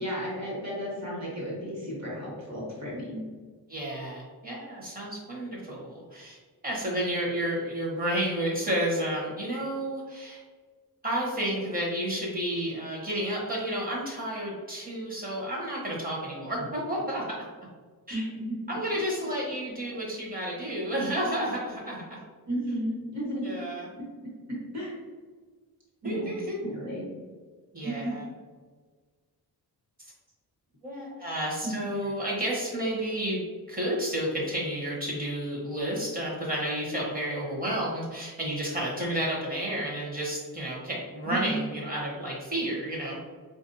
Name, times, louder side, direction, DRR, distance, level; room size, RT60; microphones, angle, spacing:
voice 1, 0.0-3.2 18.1-18.5 22.5-23.5 24.7-25.1 26.0-27.1 27.8-28.1 31.6-32.1 41.2-41.6, right 1 dB, 45° right, -5 dB, 1.4 m, -33 dB
voice 2, 3.7-6.4 6.6-10.4 11.0-17.5 18.1-18.2 18.7-22.2 23.4-23.9 26.0-26.6 27.7-28.3 30.8-33.4 33.7-43.2, right 1 dB, 20° right, -4 dB, 1.0 m, -31 dB
4.7 x 2.5 x 2.6 m, 1.5 s
wide cardioid pair, 170°, 39 cm